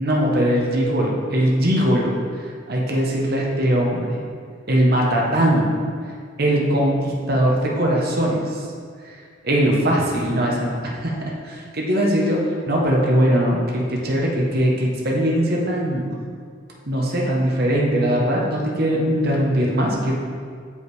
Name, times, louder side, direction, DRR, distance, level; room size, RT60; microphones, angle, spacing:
voice 1, 0.0-4.2 4.7-5.7 6.4-8.7 9.0-16.1 16.8-20.1, equal, 50° right, -2 dB, 1.0 m, -21 dB
6.5 x 5.5 x 4.8 m, 2.1 s
head